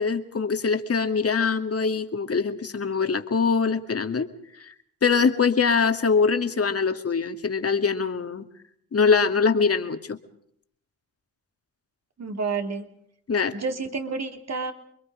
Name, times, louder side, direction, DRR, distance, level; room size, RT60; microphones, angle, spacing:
voice 1, 0.0-4.3 4.6-4.7 5.0-8.5 8.9-10.2 13.3-13.6, left 5 dB, 45° left, 7 dB, 2.2 m, -23 dB
voice 2, 12.2-12.8 13.5-14.7, right 4 dB, 50° right, 5 dB, 3.0 m, -29 dB
29.0 x 22.0 x 4.9 m, 0.67 s
cardioid pair, 60°, 34 cm